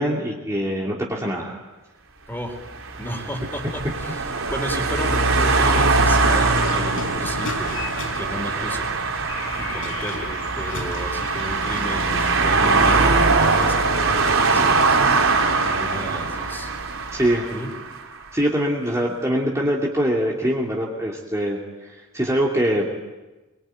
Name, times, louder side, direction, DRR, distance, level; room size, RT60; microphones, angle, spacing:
voice 1, 0.0-1.6 17.1-17.5 18.3-22.9, equal, 15° right, -3 dB, 2.7 m, -23 dB
voice 2, 2.3-2.6 3.0-7.8 8.1-8.9 9.5-14.9 15.6-16.7 17.5-17.7, equal, 10° left, 4 dB, 4.6 m, -33 dB
sound 1, 2.6-18.0, right 3 dB, 70° right, 4.0 m, -21 dB
sound 2, 6.4-12.4, left 3 dB, 70° left, 4.2 m, -36 dB
24.5 x 23.5 x 9.2 m, 1.1 s
head